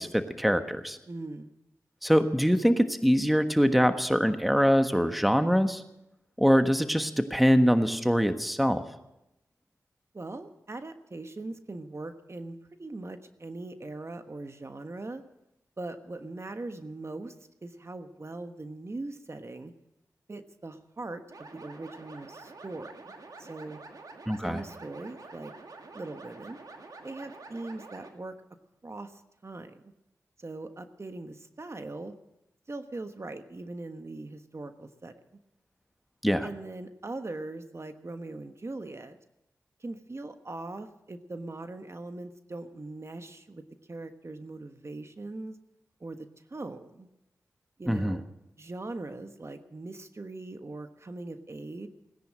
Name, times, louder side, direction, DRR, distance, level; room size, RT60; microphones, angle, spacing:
voice 1, 0.0-1.0 2.0-5.8 6.4-8.8 24.3-24.6 36.2-36.5 47.9-48.2, equal, ahead, 8 dB, 1.3 m, -23 dB
voice 2, 1.1-1.5 10.1-15.2 15.8-17.3 17.6-19.7 20.3-23.0 23.4-23.8 24.4-25.5 25.9-26.6 27.0-28.4 28.8-29.8 30.4-32.1 32.7-35.1 36.4-39.2 39.8-45.6 46.0-47.1 47.8-48.2 48.6-51.9, right 2 dB, 45° right, 8 dB, 1.3 m, -40 dB
sound 1, 21.3-28.1, right 3 dB, 70° right, 2.1 m, -47 dB
18.0 x 10.5 x 7.6 m, 0.88 s
cardioid pair, 40°, 6 cm